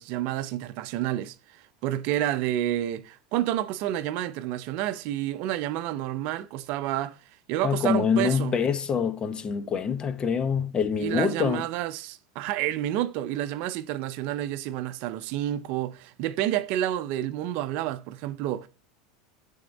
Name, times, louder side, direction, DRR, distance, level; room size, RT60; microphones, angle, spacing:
voice 1, 0.0-1.3 1.8-7.2 7.5-8.6 11.0-18.7, right 13 dB, 60° right, 0.5 m, -29 dB
voice 2, 7.6-11.7, left 6 dB, 30° left, 0.8 m, -25 dB
7.6 x 3.6 x 4.0 m
hypercardioid pair, 100°, 3 cm